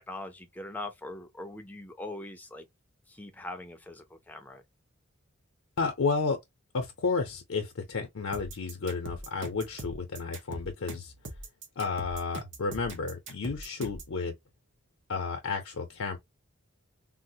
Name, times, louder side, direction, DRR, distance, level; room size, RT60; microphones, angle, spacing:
voice 1, 0.0-2.7 3.1-4.6, left 2 dB, 10° left, 0.5 m, -41 dB
voice 2, 5.8-6.4 6.7-11.1 11.8-14.3 15.1-16.2, left 4 dB, 80° left, 0.6 m, -32 dB
sound 1, 8.3-14.1, right 2 dB, 60° right, 0.8 m, -42 dB
3.8 x 2.0 x 2.6 m
head